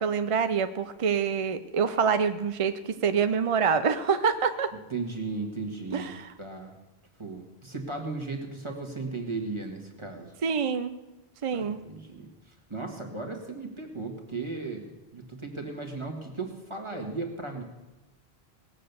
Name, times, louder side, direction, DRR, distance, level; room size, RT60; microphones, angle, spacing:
voice 1, 0.0-4.7 5.9-6.3 10.4-10.9 11.4-11.8, right 6 dB, 45° right, 9 dB, 0.4 m, -26 dB
voice 2, 4.9-6.8 7.2-10.3 11.5-17.6, right 3 dB, 30° right, 2 dB, 1.7 m, -36 dB
18.5 x 7.7 x 6.8 m, 1.0 s
omnidirectional pair, 1.1 m